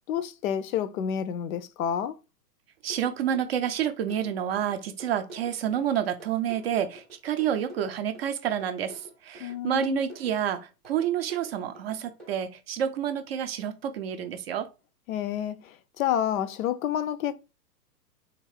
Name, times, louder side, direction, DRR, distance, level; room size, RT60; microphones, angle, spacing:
voice 1, 0.1-2.2 9.4-10.0 15.1-15.6 16.0-17.3, left 9 dB, 60° left, 0.5 m, -29 dB
voice 2, 2.8-14.7, right 9 dB, 40° right, 0.4 m, -29 dB
sound 1, 2.9-12.3, right 1 dB, ahead, 0.7 m, -48 dB
3.6 x 2.4 x 3.2 m
hypercardioid pair, 130°, 49 cm